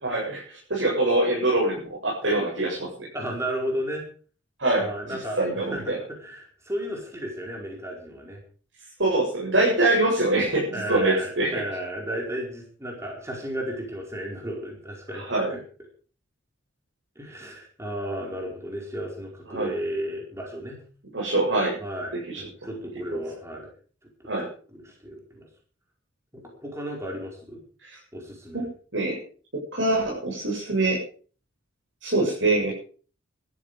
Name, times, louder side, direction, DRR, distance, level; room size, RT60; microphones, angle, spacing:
voice 1, 0.0-3.1 4.6-4.9 5.4-6.0 9.0-11.5 15.3-15.5 19.5-19.7 21.1-21.8 22.3-22.4 24.3-24.5 27.8-28.0 28.5-28.7 28.9-29.2 29.7-31.0 32.0-32.7, right 2 dB, 75° right, -4 dB, 7.5 m, -24 dB
voice 2, 3.1-4.0 4.8-8.4 10.7-15.6 17.1-20.8 21.8-23.7 24.2-25.5 26.3-27.6 28.1-28.7, equal, 15° right, 0 dB, 4.7 m, -34 dB
17.0 x 14.0 x 5.1 m, 0.42 s
head